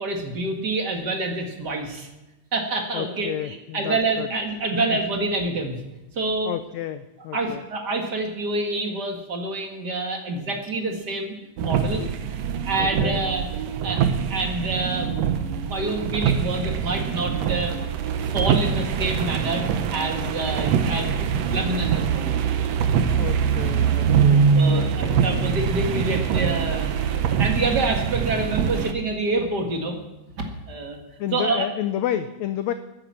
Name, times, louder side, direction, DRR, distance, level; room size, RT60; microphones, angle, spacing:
voice 1, 0.0-2.1 2.5-5.8 6.2-6.5 7.3-12.1 12.7-13.4 13.8-17.7 18.2-19.6 19.9-22.5 24.6-30.0 30.4-31.0 31.3-31.7, right 2 dB, 40° right, 3 dB, 1.8 m, -27 dB
voice 2, 2.9-4.3 4.9-5.0 6.4-7.6 12.8-13.2 23.2-25.2 31.2-32.7, left 11 dB, 90° left, 11 dB, 1.5 m, -31 dB
sound 1, 11.6-28.9, right 7 dB, 65° right, 1.8 m, -23 dB
16.0 x 10.0 x 7.5 m, 1.0 s
omnidirectional pair, 3.9 m